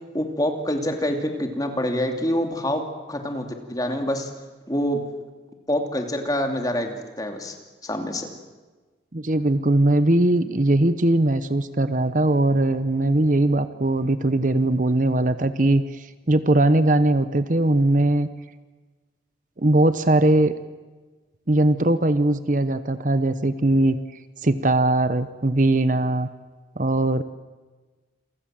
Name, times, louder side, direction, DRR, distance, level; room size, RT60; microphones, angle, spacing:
voice 1, 0.1-2.8 3.1-4.3 4.7-5.0 5.7-7.5 7.8-8.3, equal, 20° left, 4 dB, 2.8 m, -26 dB
voice 2, 9.1-18.3 19.6-20.5 21.5-24.0 24.4-26.3 26.8-27.2, right 1 dB, 45° right, 12 dB, 0.9 m, -20 dB
28.0 x 24.0 x 7.7 m, 1.3 s
head